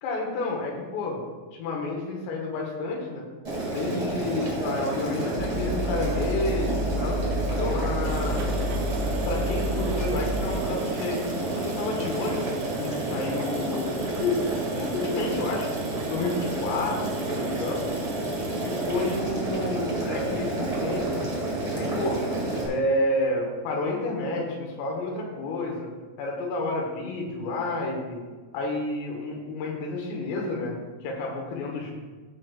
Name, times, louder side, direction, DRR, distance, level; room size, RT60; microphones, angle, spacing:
voice 1, 0.0-1.2 1.5-3.3 3.7-7.2 7.6-8.5 9.3-11.2 11.5-15.7 16.1-17.9 18.6-21.3 21.7-22.2 22.6-25.9 26.2-28.2 28.5-31.9, left 2 dB, 80° left, 0 dB, 3.9 m, -30 dB
Boiling, 3.4-22.7, right 2 dB, 50° right, 0.8 m, -30 dB
sound 1, 5.4-10.4, equal, 35° left, 2.2 m, -29 dB
sound 2, 7.8-19.7, right 5 dB, 75° right, 3.3 m, -43 dB
15.5 x 6.3 x 2.5 m, 1.4 s
omnidirectional pair, 5.9 m